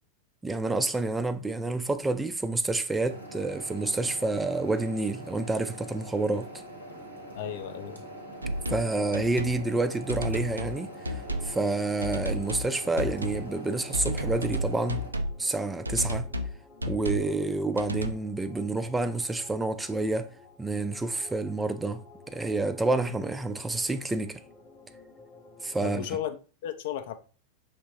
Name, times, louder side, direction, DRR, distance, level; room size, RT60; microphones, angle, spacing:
voice 1, 0.4-6.5 8.7-15.0 15.4-16.3 16.9-20.3 20.6-22.0 22.3-24.4 25.6-26.1, right 2 dB, 10° right, 0.4 m, -29 dB
sound 1, 3.1-15.1, right 1 dB, 85° left, 1.0 m, -43 dB
voice 2, 7.3-8.0 25.8-27.1, left 10 dB, 55° left, 0.4 m, -34 dB
sound 2, 8.4-8.9 9.1-9.6 10.1-10.8 11.0-11.5 12.0-12.7 13.0-13.4 13.9-15.3 15.8-16.5 16.8-17.3 17.8-18.1, equal, 80° right, 0.4 m, -31 dB
sound 3, 8.8-26.2, left 3 dB, 20° left, 0.9 m, -53 dB
5.3 x 3.3 x 2.9 m
figure-of-eight pair, 90°, 0 cm